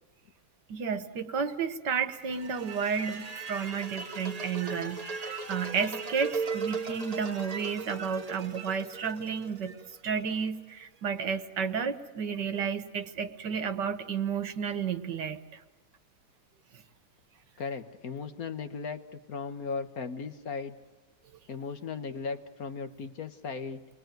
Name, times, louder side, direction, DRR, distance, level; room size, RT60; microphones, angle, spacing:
voice 1, 0.7-9.7 10.0-15.4, right 6 dB, 70° right, 10 dB, 1.8 m, -32 dB
sound 1, 2.2-10.3, right 4 dB, 25° right, 1.0 m, -38 dB
voice 2, 17.6-20.7 21.5-23.9, left 5 dB, 55° left, 9 dB, 1.4 m, -37 dB
29.0 x 21.0 x 9.2 m, 1.2 s
omnidirectional pair, 2.0 m